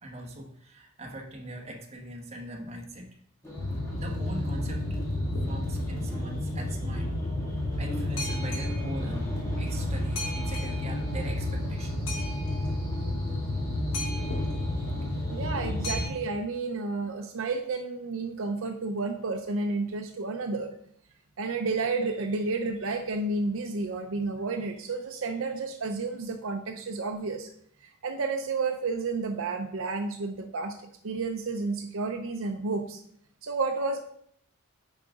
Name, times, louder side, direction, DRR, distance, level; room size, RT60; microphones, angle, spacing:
voice 1, 0.0-3.1 3.9-4.8 5.5-7.2 7.8-12.0 15.3-15.4, right 1 dB, 30° right, 0 dB, 1.2 m, -40 dB
sound 1, 3.4-16.1, equal, 15° left, 1.9 m, -39 dB
Boat Water vehicle, 3.6-16.1, left 1 dB, 75° left, 1.7 m, -31 dB
voice 2, 15.3-20.7 21.4-27.5 27.8-33.0 33.4-34.0, right 3 dB, 65° right, 5 dB, 0.6 m, -31 dB
8.6 x 4.9 x 3.7 m, 0.66 s
head